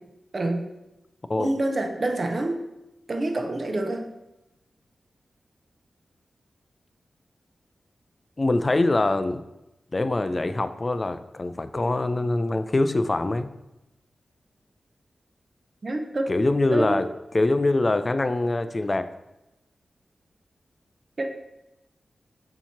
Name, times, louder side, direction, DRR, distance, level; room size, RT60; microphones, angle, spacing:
voice 1, 0.3-0.7 1.4-2.6 3.1-4.1 15.8-16.4 16.7-17.1 21.2-21.3, right 2 dB, 40° right, 5 dB, 0.6 m, -27 dB
voice 2, 8.4-9.4 9.9-13.5 16.3-17.1 17.3-19.1, left 2 dB, 25° left, 11 dB, 0.3 m, -24 dB
7.1 x 2.9 x 5.8 m, 0.94 s
wide cardioid pair, 150°, 0 cm